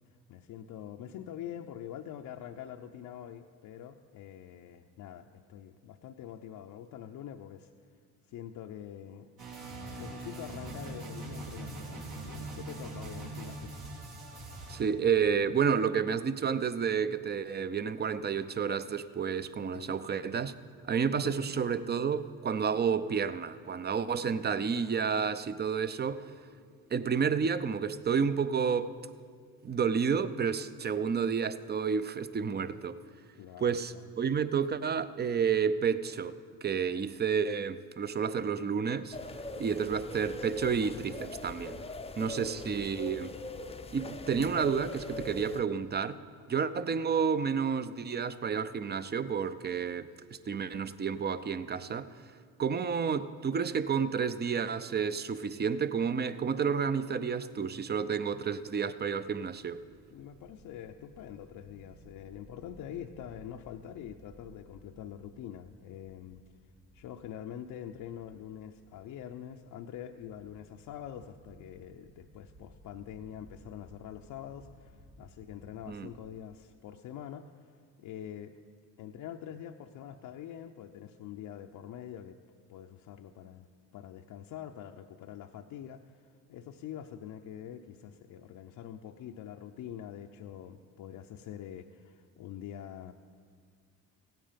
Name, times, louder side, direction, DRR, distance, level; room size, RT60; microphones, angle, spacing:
voice 1, 0.3-7.7 8.3-9.3 10.0-13.7 19.7-20.0 21.1-21.4 24.7-24.9 30.4-30.5 31.7-31.8 33.4-34.0 39.6-39.9 42.2-42.6 45.4-45.6 60.1-66.4 66.9-78.5 79.0-82.4 82.7-83.7 83.9-93.1, left 10 dB, 65° left, 0.6 m, -45 dB
sound 1, 9.4-14.8, right 2 dB, 70° right, 3.4 m, -42 dB
voice 2, 14.7-20.5 20.8-26.3 26.9-28.9 29.6-33.0 33.6-39.2 39.6-41.8 42.2-43.3 43.9-46.1 46.5-52.1 52.6-59.8 75.9-76.1, right 6 dB, 30° right, 0.6 m, -30 dB
sound 2, 39.1-45.6, left 2 dB, 15° left, 0.6 m, -42 dB
sound 3, 59.4-76.4, right 1 dB, 50° right, 3.1 m, -59 dB
16.0 x 9.0 x 5.1 m
supercardioid pair, 70°, 36 cm